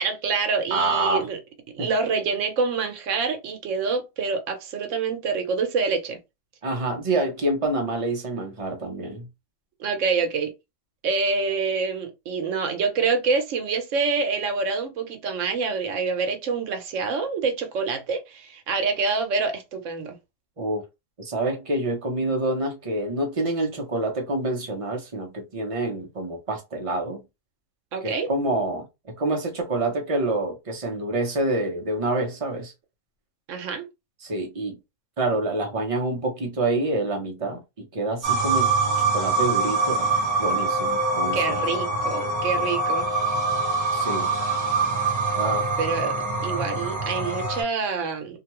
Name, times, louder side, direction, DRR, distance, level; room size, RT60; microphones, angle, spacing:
voice 1, 0.0-1.4 1.7-6.2 9.8-10.5 11.0-20.2 27.9-28.3 33.5-33.9 41.3-43.1 45.8-46.1 46.4-48.4, right 4 dB, 75° right, 1.1 m, -26 dB
voice 2, 0.7-1.3 1.8-1.9 6.6-9.3 20.6-20.8 21.2-27.2 28.0-32.7 34.2-34.8 35.2-40.1 40.4-41.6 43.9-44.3 45.3-45.7 46.0-46.1, right 2 dB, 35° right, 0.6 m, -27 dB
sound 1, 38.2-47.6, right 3 dB, 15° right, 1.2 m, -24 dB
2.7 x 2.2 x 2.9 m
omnidirectional pair, 1.3 m